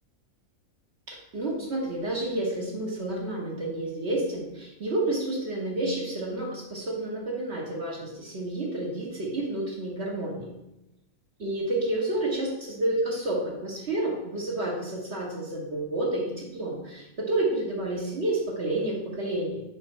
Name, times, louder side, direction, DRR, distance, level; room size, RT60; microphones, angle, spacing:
voice 1, 1.1-10.5 11.4-19.6, right 2 dB, 50° right, -2 dB, 1.4 m, -30 dB
5.4 x 4.9 x 4.3 m, 0.92 s
omnidirectional pair, 1.5 m